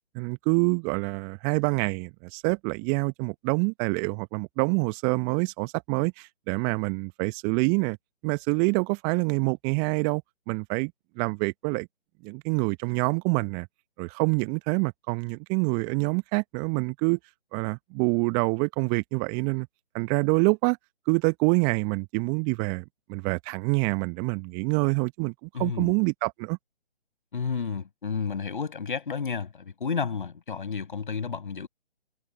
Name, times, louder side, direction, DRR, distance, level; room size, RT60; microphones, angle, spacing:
voice 1, 0.1-8.0 8.2-10.2 10.5-10.9 11.2-11.9 12.2-13.7 14.0-17.2 17.5-19.7 19.9-20.8 21.1-22.8 23.1-25.3 25.6-26.6, right 38 dB, 10° right, 0.9 m, -26 dB
voice 2, 25.5-25.9 27.3-31.7, left 5 dB, 50° left, 6.3 m, -31 dB
figure-of-eight pair, 140°, 31 cm